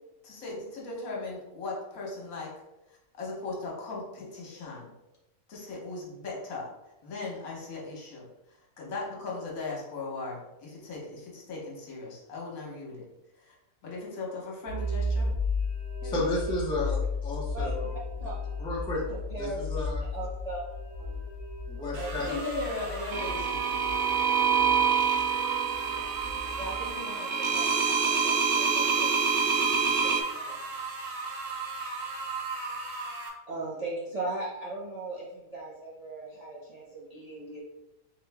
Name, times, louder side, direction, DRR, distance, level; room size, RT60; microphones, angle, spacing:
voice 1, 0.2-2.5 3.1-4.9 5.5-6.7 7.0-13.1 13.4-13.5 13.8-15.3 16.0-16.2 22.2-23.8, left 3 dB, 70° left, -3 dB, 1.5 m, -38 dB
sound 1, 14.7-26.9, left 2 dB, 35° left, 0.8 m, -34 dB
voice 2, 16.0-17.9 18.6-19.0 19.4-20.0 21.7-22.3, left 1 dB, 5° left, -4 dB, 0.5 m, -32 dB
voice 3, 19.1-19.6 20.1-20.6 21.0-21.2 22.0-22.4 26.6-30.6 33.5-37.6, right 2 dB, 35° right, -6 dB, 0.6 m, -39 dB
sound 2, 21.9-33.3, right 3 dB, 65° right, 1.1 m, -38 dB
sound 3, 23.1-30.2, right 6 dB, 80° right, 0.5 m, -26 dB
3.6 x 3.1 x 3.4 m, 0.95 s
omnidirectional pair, 1.5 m